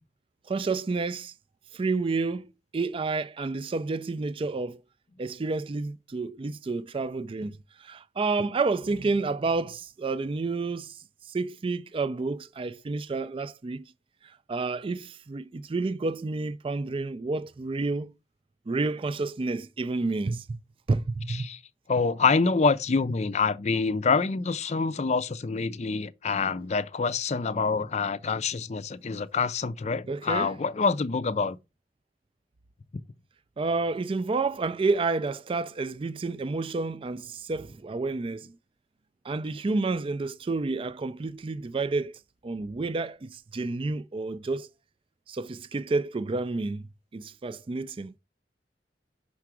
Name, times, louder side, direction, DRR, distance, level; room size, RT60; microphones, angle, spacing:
voice 1, 0.5-1.3 1.7-4.8 5.2-13.8 14.5-18.1 18.7-20.6 20.9-21.5 30.1-30.5 33.6-38.5 39.2-42.1 42.4-44.7 45.3-46.8 47.1-48.1, right 3 dB, 30° right, 0.4 m, -30 dB
voice 2, 21.3-21.6 21.9-31.6, left 4 dB, 40° left, 0.5 m, -26 dB
5.8 x 4.7 x 6.0 m
head